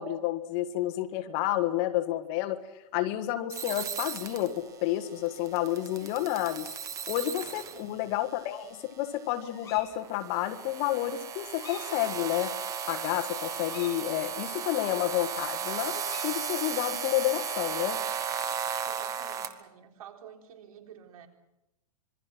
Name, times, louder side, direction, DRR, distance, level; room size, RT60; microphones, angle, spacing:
voice 1, 0.0-2.6 2.9-6.7 7.1-12.5 12.9-18.0, left 14 dB, 35° left, 8 dB, 1.6 m, -30 dB
sound 1, 3.5-19.5, right 7 dB, 15° right, 1.4 m, -36 dB
voice 2, 7.5-8.1 18.8-21.3, right 9 dB, 70° right, 4 dB, 3.9 m, -49 dB
sound 2, 8.5-9.0 9.4-9.9 11.4-11.9 12.3-12.4 12.7-14.0 15.9-16.2, left 5 dB, 15° left, 4.8 m, -49 dB
26.0 x 22.0 x 6.2 m, 0.92 s
supercardioid pair, 160°, 19 cm